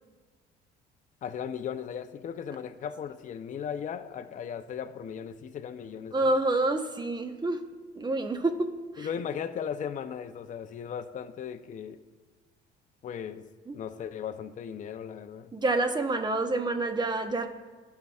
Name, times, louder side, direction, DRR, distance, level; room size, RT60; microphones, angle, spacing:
voice 1, 1.2-6.3 9.0-12.0 13.0-13.5 13.7-15.5, left 8 dB, 40° left, 8 dB, 0.5 m, -37 dB
voice 2, 6.1-7.6 8.0-8.5 9.0-9.1 13.7-13.8 15.5-17.5, right 2 dB, 20° right, 7 dB, 0.9 m, -27 dB
16.5 x 5.5 x 2.3 m, 1.4 s
cardioid pair, 95°, 20 cm